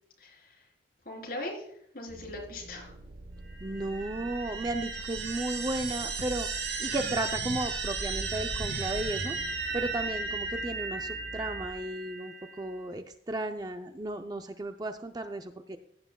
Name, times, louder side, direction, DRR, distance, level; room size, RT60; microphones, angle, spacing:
voice 1, 0.2-0.6 1.1-1.7 1.9-2.9, left 1 dB, 50° left, -1 dB, 3.6 m, -40 dB
sound 1, 2.1-11.7, right 1 dB, 50° right, 1.0 m, -47 dB
sound 2, 3.5-12.8, right 4 dB, 70° right, 2.5 m, -35 dB
voice 2, 3.6-9.4 9.7-15.8, right 2 dB, 20° right, 7 dB, 0.4 m, -34 dB
16.5 x 9.3 x 2.2 m, 0.67 s
head